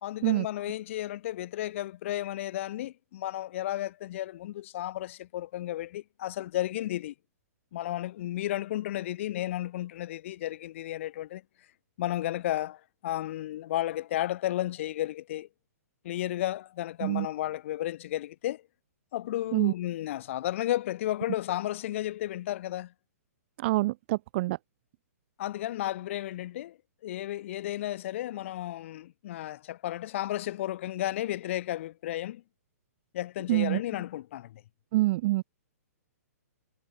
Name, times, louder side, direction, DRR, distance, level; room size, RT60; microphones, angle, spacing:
voice 1, 0.0-7.1 7.7-11.4 12.0-15.5 16.0-18.6 19.1-22.9 25.4-26.8 27.0-32.4 33.1-34.6, left 14 dB, 50° left, 1.3 m, -33 dB
voice 2, 23.6-24.6 33.5-33.8 34.9-35.4, right 19 dB, 45° right, 1.4 m, -26 dB
hypercardioid pair, 140°, 9 cm